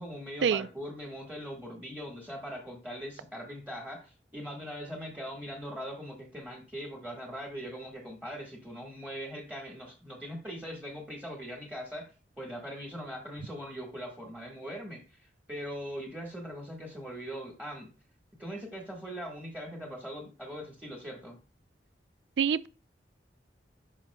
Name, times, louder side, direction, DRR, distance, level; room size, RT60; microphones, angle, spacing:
voice 1, 0.0-17.9 18.4-21.4, equal, 10° right, 1.4 m, -41 dB
voice 2, 22.4-22.7, right 7 dB, 80° right, 0.4 m, -26 dB
10.0 x 5.8 x 2.2 m
head